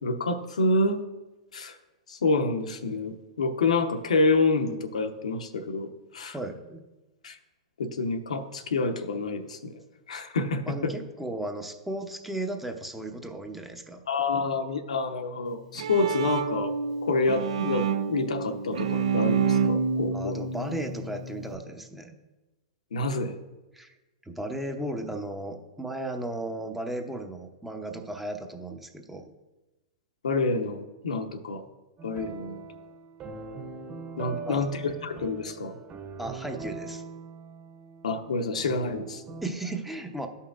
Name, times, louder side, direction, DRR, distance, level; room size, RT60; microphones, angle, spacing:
voice 1, 0.0-1.0 1.5-1.8 2.1-5.9 6.1-6.4 7.2-7.4 7.8-9.8 10.1-11.0 14.1-16.7 17.0-20.5 22.9-23.4 30.2-31.6 32.0-32.6 34.2-35.8 38.0-39.2, left 3 dB, 90° left, 5 dB, 0.9 m, -28 dB
voice 2, 6.3-6.8 10.6-14.0 20.1-22.2 23.7-23.9 24.3-29.3 34.3-34.6 36.2-37.0 39.4-40.3, right 1 dB, 5° right, 4 dB, 0.7 m, -35 dB
Bowed string instrument, 15.5-21.5, right 6 dB, 75° right, 0.5 m, -28 dB
sound 1, 32.0-39.4, right 4 dB, 40° right, 1.8 m, -41 dB
13.5 x 5.6 x 2.5 m, 1.1 s
hypercardioid pair, 120°, 4 cm